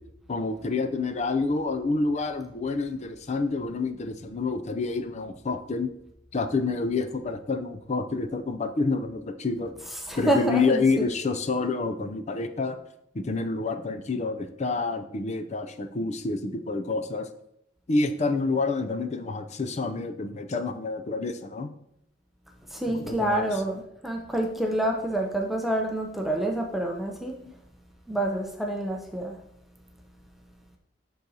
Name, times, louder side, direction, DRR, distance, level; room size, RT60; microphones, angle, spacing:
voice 1, 0.3-5.9 6.3-9.7 10.2-12.8 13.1-17.3 17.9-21.7 22.9-23.6, left 3 dB, 40° left, 8 dB, 0.5 m, -28 dB
voice 2, 10.1-11.1 22.7-27.3 28.1-29.4, right 1 dB, ahead, 1 dB, 0.6 m, -27 dB
11.0 x 4.0 x 2.8 m, 0.78 s
head